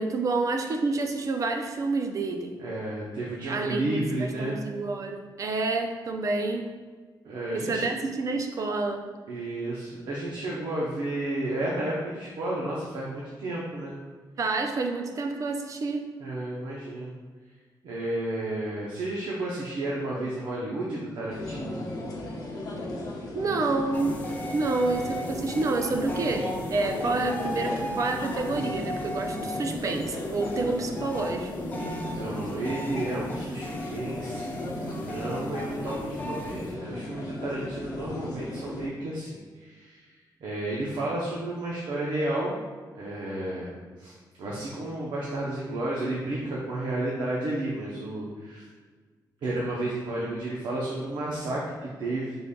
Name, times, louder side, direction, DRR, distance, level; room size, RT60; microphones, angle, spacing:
voice 1, 0.0-2.6 3.4-6.7 7.5-9.1 14.4-16.1 23.3-31.5, right 3 dB, 45° right, 5 dB, 0.4 m, -29 dB
voice 2, 2.6-4.6 7.2-7.9 9.3-13.9 16.2-17.1 17.8-21.8 31.8-40.2 40.4-42.5 42.9-43.7 44.0-48.6 49.4-52.4, right 1 dB, 80° right, -4 dB, 0.7 m, -32 dB
sound 1, 21.3-38.9, left 1 dB, 55° left, 0.9 m, -35 dB
sound 2, 23.9-36.7, left 1 dB, 20° left, 0.4 m, -39 dB
5.2 x 3.8 x 2.2 m, 1.5 s
wide cardioid pair, 145°, 8 cm